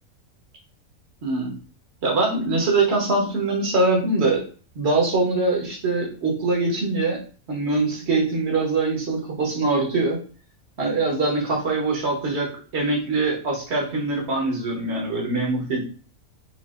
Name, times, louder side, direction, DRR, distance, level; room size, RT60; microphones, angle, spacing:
voice 1, 1.2-1.5 2.0-4.4 4.7-7.2 7.5-10.2 10.8-15.8, right 3 dB, 50° right, -1 dB, 1.4 m, -23 dB
5.4 x 2.7 x 2.5 m, 0.39 s
omnidirectional pair, 1.4 m